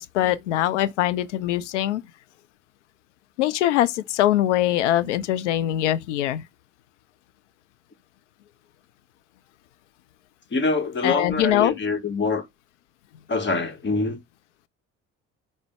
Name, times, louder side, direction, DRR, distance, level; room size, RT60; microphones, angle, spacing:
voice 1, 0.0-2.0 3.4-6.4 11.0-11.8, left 13 dB, 90° left, 0.5 m, -22 dB
voice 2, 10.5-12.4 13.3-14.2, left 3 dB, 30° left, 1.1 m, -25 dB
5.1 x 2.1 x 4.6 m
hypercardioid pair, 60°, 35 cm